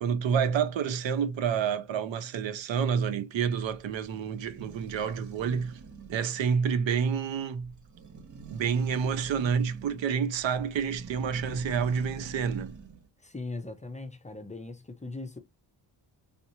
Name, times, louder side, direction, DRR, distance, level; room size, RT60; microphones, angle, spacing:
voice 1, 0.0-5.8 6.1-7.7 8.5-12.7, right 7 dB, 80° right, 0.7 m, -28 dB
sound 1, 3.6-13.1, right 4 dB, 40° right, 0.8 m, -47 dB
voice 2, 13.2-15.4, left 2 dB, 15° left, 0.5 m, -39 dB
3.5 x 2.8 x 2.7 m
wide cardioid pair, 115°, 44 cm